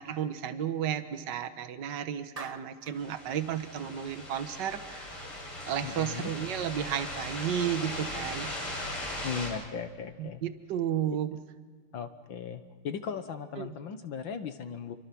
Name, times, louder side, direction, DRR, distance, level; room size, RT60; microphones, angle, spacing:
voice 1, 0.0-5.2 5.7-8.5 10.2-11.3 13.6-13.7, right 9 dB, 55° right, 10 dB, 1.7 m, -33 dB
Clapping, 2.4-3.0, right 4 dB, 75° right, 0.3 m, -43 dB
sound 1, 2.9-9.5, left 1 dB, 90° left, 7.7 m, -39 dB
voice 2, 5.8-6.3 9.2-10.4 11.9-15.0, left 6 dB, 65° left, 8 dB, 1.9 m, -37 dB
29.0 x 24.5 x 6.1 m, 1.5 s
omnidirectional pair, 2.4 m